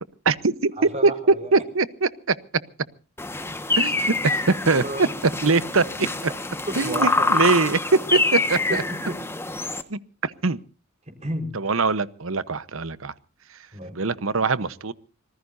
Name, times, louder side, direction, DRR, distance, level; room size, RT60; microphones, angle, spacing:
voice 1, 0.2-0.7 1.0-1.1 1.5-2.3 3.8-4.0 4.2-4.4 4.7-4.8 5.4-6.1 6.8-7.8 8.1-8.8 9.9-10.6 11.5-13.1 13.9-14.9, right 4 dB, 85° right, 15 dB, 1.1 m, -23 dB
voice 2, 0.8-1.5 4.7-5.2 6.3-6.4 6.7-7.5 8.7-9.2 11.1-11.5 13.7-14.0, right 1 dB, 35° right, 6 dB, 4.7 m, -32 dB
sound 1, 3.2-9.8, left 2 dB, 10° left, 1.5 m, -26 dB
26.0 x 20.0 x 2.7 m, 0.39 s
head